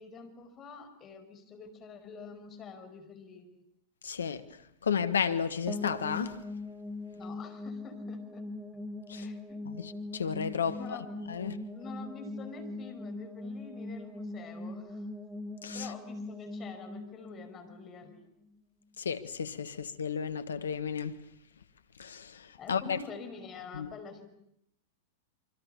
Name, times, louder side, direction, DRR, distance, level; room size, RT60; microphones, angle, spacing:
voice 1, 0.0-3.6 7.1-8.4 9.1-9.6 10.7-11.4 11.7-15.1 15.7-18.3 19.7-19.8 22.6-24.3, left 5 dB, 30° left, 5.6 m, -47 dB
voice 2, 4.0-4.4 4.8-6.4 9.1-9.3 9.7-11.0 11.3-11.6 15.6-15.9 19.0-21.2 22.0-23.0 23.7-23.9, left 7 dB, 80° left, 1.5 m, -33 dB
sound 1, 5.7-18.6, left 2 dB, ahead, 2.3 m, -41 dB
27.0 x 24.5 x 7.1 m
hypercardioid pair, 100°, 0 cm